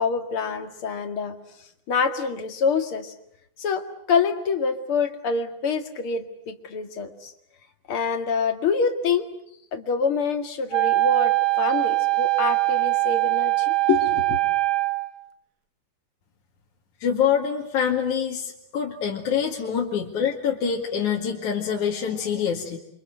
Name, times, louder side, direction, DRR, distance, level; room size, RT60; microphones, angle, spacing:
voice 1, 0.0-1.4 1.9-3.1 3.6-7.3 7.9-9.3 9.7-14.4, left 5 dB, 45° left, 6 dB, 2.4 m, -26 dB
Wind instrument woodwind instrument, 10.7-15.1, right 20 dB, 60° right, 2.2 m, -22 dB
voice 2, 17.0-22.8, left 7 dB, 60° left, -1 dB, 3.3 m, -25 dB
29.0 x 26.0 x 7.9 m, 0.72 s
omnidirectional pair, 4.2 m